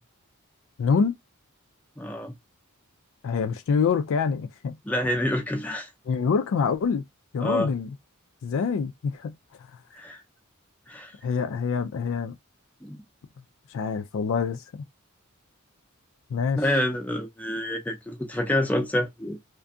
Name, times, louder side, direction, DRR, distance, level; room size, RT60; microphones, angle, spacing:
voice 1, 0.8-1.1 3.2-4.8 6.1-7.0 7.3-7.9 8.4-9.3 11.2-12.4 13.7-14.8 16.3-16.6, left 5 dB, 65° left, 0.4 m, -25 dB
voice 2, 2.0-2.3 4.9-5.9 7.4-7.7 9.9-10.2 10.9-11.1 12.8-13.0 16.5-19.4, left 1 dB, 5° left, 0.5 m, -27 dB
2.6 x 2.5 x 2.3 m
head